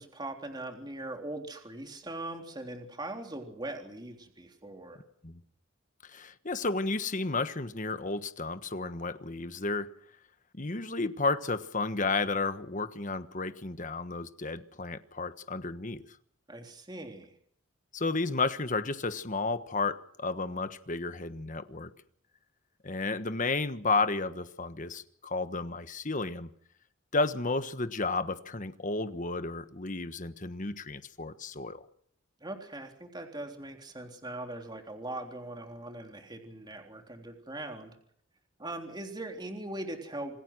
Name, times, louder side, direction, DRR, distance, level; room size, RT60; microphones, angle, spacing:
voice 1, 0.0-5.0 16.5-17.3 32.4-37.9 38.6-40.4, right 1 dB, 20° right, 3.6 m, -40 dB
voice 2, 6.0-9.9 10.6-16.0 17.9-21.9 22.8-26.5 27.1-31.9, left 3 dB, 40° left, 1.4 m, -32 dB
27.5 x 19.5 x 6.3 m
head